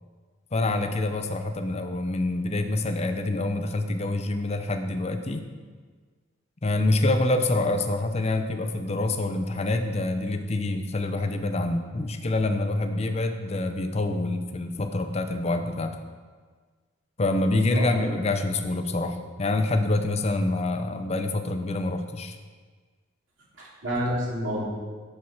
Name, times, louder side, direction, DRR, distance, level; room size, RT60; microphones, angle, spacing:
voice 1, 0.5-5.4 6.6-16.0 17.2-22.4, left 2 dB, 35° left, 7 dB, 0.6 m, -26 dB
voice 2, 17.6-17.9 18.9-19.0 23.6-24.6, equal, 80° right, -6 dB, 2.7 m, -29 dB
8.6 x 4.6 x 5.8 m, 1.5 s
head